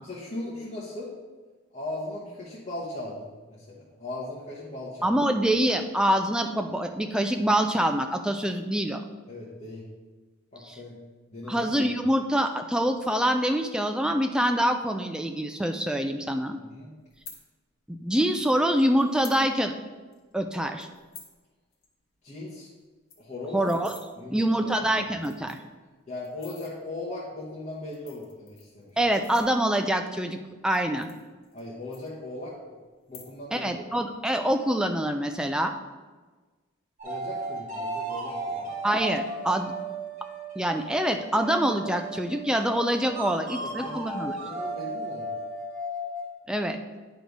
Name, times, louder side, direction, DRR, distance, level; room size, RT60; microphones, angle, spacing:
voice 1, 0.0-1.1 1.7-5.1 9.3-9.8 10.5-11.0 11.3-11.6 16.6-17.0 22.2-22.7 23.2-23.6 24.2-24.8 26.1-29.0 31.5-32.7 33.1-33.7 37.0-38.7 43.3-44.0 44.3-45.3, left 2 dB, 35° left, -6 dB, 1.1 m, -38 dB
voice 2, 5.0-9.0 10.6-10.7 11.5-16.6 17.9-19.7 20.3-20.9 23.5-23.9 24.3-25.6 29.0-31.1 33.5-35.7 38.8-39.7 40.6-44.3 46.5-46.8, right 1 dB, 5° right, 6 dB, 0.4 m, -25 dB
sound 1, 17.1-17.4 18.3-18.4 19.0-19.4 19.8-19.9 20.1-20.3 20.8-21.4 21.7-21.9 22.1-22.2 22.5-22.6 22.9-24.0 24.7-24.8 25.1-25.7 26.2-26.7 27.7-29.9 30.6-31.6 31.9-32.5 33.0-33.6 33.9-34.3, left 6 dB, 75° left, 1.3 m, -48 dB
sound 2, 37.0-46.4, right 2 dB, 35° right, 1.6 m, -35 dB
9.5 x 3.3 x 5.2 m, 1.3 s
head